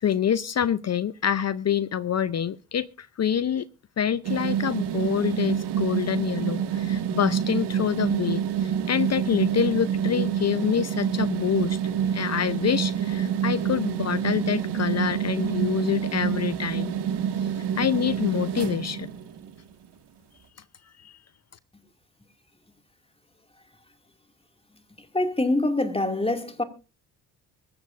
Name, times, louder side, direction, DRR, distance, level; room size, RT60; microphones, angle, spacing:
voice 1, 0.0-3.7 4.0-11.8 12.1-16.9 17.8-19.1 21.0-21.1, left 9 dB, 35° left, 0.6 m, -26 dB
sound 1, 4.2-19.6, right 9 dB, 60° right, 1.9 m, -27 dB
voice 2, 25.1-26.6, left 2 dB, 10° left, 2.3 m, -24 dB
24.0 x 13.5 x 2.5 m
hypercardioid pair, 50°, 45 cm